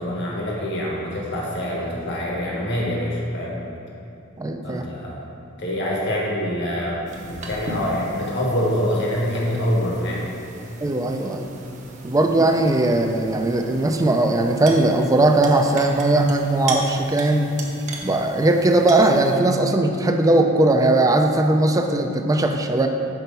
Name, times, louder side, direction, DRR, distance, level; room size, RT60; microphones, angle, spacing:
voice 1, 0.0-3.6 4.6-5.3 5.6-10.3, equal, 60° left, -4 dB, 1.3 m, -25 dB
voice 2, 4.4-4.9 10.8-11.5 12.0-17.5 18.0-22.9, right 2 dB, 15° right, 4 dB, 0.3 m, -19 dB
sound 1, 7.1-19.3, right 2 dB, 35° right, 0.7 m, -37 dB
6.0 x 4.4 x 5.4 m, 2.7 s
head